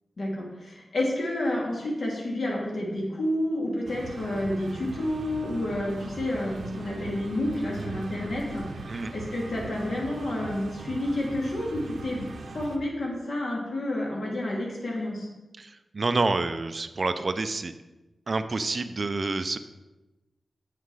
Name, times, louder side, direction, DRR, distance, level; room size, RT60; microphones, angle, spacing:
voice 1, 0.2-12.3 12.5-15.3, left 1 dB, 70° left, -3 dB, 2.5 m, -30 dB
sound 1, 3.9-12.8, right 3 dB, 80° right, 0.7 m, -40 dB
voice 2, 15.6-17.7 18.3-19.6, right 3 dB, 40° right, 10 dB, 0.4 m, -28 dB
8.2 x 5.8 x 4.8 m, 1.1 s
wide cardioid pair, 140°, 0 cm